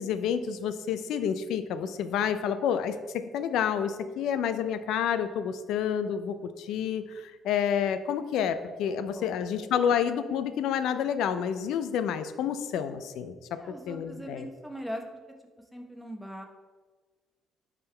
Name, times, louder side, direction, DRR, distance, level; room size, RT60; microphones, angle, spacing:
voice 1, 0.0-13.6 13.9-14.5, left 8 dB, 75° left, 11 dB, 0.4 m, -29 dB
voice 2, 13.6-15.0 15.7-16.4, equal, ahead, 1 dB, 0.8 m, -40 dB
10.0 x 3.7 x 3.3 m, 1.4 s
cardioid pair, 145°, 0 cm